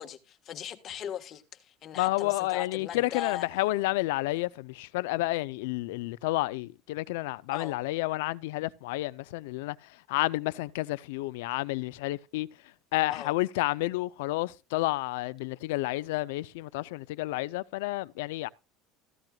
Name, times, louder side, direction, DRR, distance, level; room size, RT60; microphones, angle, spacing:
voice 1, 0.0-3.5 7.5-7.7 13.1-13.3, left 10 dB, 40° left, 1.4 m, -39 dB
voice 2, 1.9-12.5 12.9-18.5, left 19 dB, 90° left, 0.5 m, -30 dB
15.0 x 12.0 x 2.3 m
cardioid pair, 140°, 0 cm